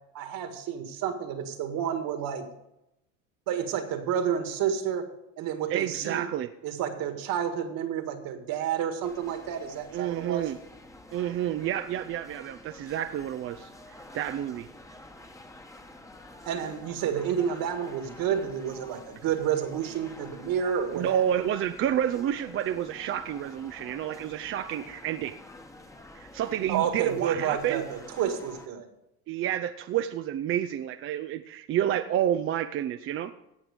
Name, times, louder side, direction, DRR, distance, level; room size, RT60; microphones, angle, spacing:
voice 1, 0.1-2.5 3.5-5.1 5.4-6.3 6.6-10.4 16.5-21.2 26.7-28.9, right 8 dB, 55° right, 7 dB, 1.9 m, -30 dB
voice 2, 5.7-6.5 9.9-10.6 11.1-14.7 20.9-25.3 26.1-27.8 29.3-33.3, right 11 dB, 35° right, 10 dB, 0.4 m, -29 dB
sound 1, 9.0-28.7, left 1 dB, 10° left, 1.1 m, -48 dB
17.0 x 6.0 x 5.1 m, 0.86 s
supercardioid pair, 105°, 41 cm